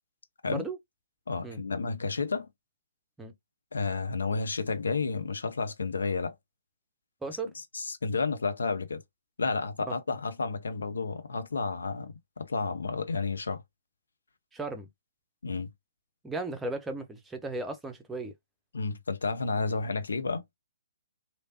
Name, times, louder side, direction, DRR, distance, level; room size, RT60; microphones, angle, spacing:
voice 1, 1.3-2.5 3.7-6.3 7.7-9.0 9.4-13.6 15.4-15.7 18.7-20.4, left 4 dB, 65° left, 0.6 m, -31 dB
voice 2, 14.5-14.9 16.2-18.3, right 2 dB, 10° right, 0.6 m, -35 dB
3.2 x 2.7 x 2.7 m
figure-of-eight pair, 125°, 0 cm